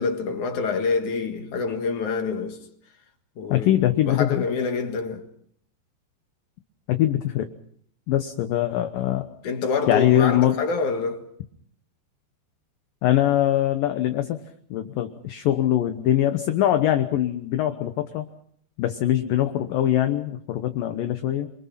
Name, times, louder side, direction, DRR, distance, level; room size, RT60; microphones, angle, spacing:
voice 1, 0.0-2.6 3.4-3.7 4.1-5.3 9.4-11.3, left 4 dB, 55° left, 2.6 m, -26 dB
voice 2, 3.5-4.4 6.9-7.5 8.1-9.3 9.9-10.6 13.0-14.4 14.7-18.3 18.8-21.5, left 12 dB, 70° left, 2.3 m, -22 dB
27.5 x 23.5 x 5.8 m
omnidirectional pair, 5.1 m